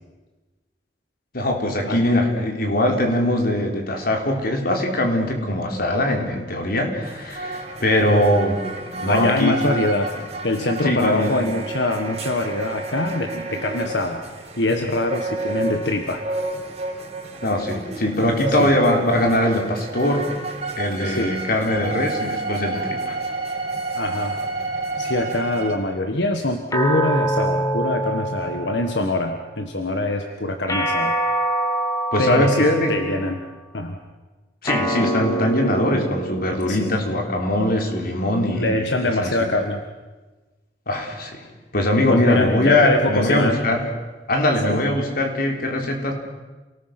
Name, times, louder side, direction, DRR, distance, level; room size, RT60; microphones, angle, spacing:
voice 1, 1.3-8.6 9.0-9.6 10.8-11.4 17.4-20.3 20.8-23.2 32.1-32.9 34.6-39.3 40.9-41.5 41.7-43.8 44.3-46.1, left 1 dB, 60° left, 3 dB, 3.8 m, -21 dB
sound 1, 7.0-25.8, right 3 dB, 40° right, 3.6 m, -30 dB
voice 2, 9.1-10.1 10.4-16.2 18.5-18.7 21.0-21.4 23.9-24.4 25.0-31.2 32.2-33.4 33.7-34.0 36.7-36.9 38.5-39.8 42.1-43.6 44.7-44.8, left 2 dB, 85° left, 5 dB, 1.5 m, -24 dB
sound 2, 26.7-29.3 30.7-33.2 34.7-37.3, right 1 dB, 20° left, 1.6 m, -25 dB
28.5 x 19.0 x 6.0 m, 1.2 s
head